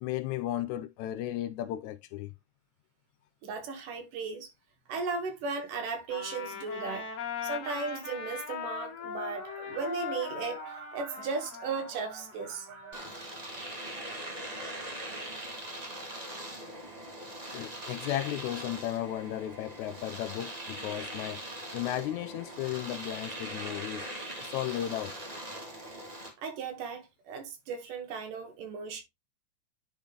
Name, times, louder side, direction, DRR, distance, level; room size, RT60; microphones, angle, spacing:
voice 1, 0.0-2.3 17.5-21.4 21.7-24.1 24.4-25.1, left 13 dB, 80° left, 1.8 m, -35 dB
voice 2, 3.4-4.5 4.9-7.1 7.4-13.3 13.8-14.0 26.4-29.0, right 4 dB, 85° right, 3.1 m, -36 dB
Trumpet, 6.1-13.2, left 6 dB, 55° left, 2.9 m, -40 dB
Domestic sounds home sounds, 12.9-26.3, right 1 dB, 20° right, 1.0 m, -41 dB
10.0 x 3.6 x 3.7 m
omnidirectional pair, 3.6 m